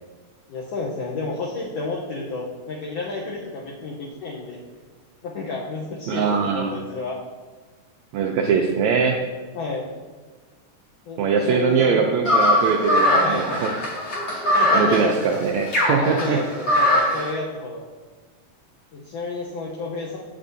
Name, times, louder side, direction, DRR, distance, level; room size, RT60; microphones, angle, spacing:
voice 1, 0.5-4.6 5.2-7.2 9.5-9.9 11.1-12.1 13.0-13.7 14.5-15.3 16.0-17.9 18.9-20.2, left 3 dB, 75° left, -4 dB, 1.5 m, -31 dB
voice 2, 6.1-6.7 8.1-9.3 11.2-13.7 14.7-16.4, right 5 dB, 90° right, 2 dB, 1.5 m, -22 dB
sound 1, 12.3-17.3, left 1 dB, 55° left, 2.9 m, -20 dB
9.8 x 7.3 x 2.6 m, 1.4 s
omnidirectional pair, 3.8 m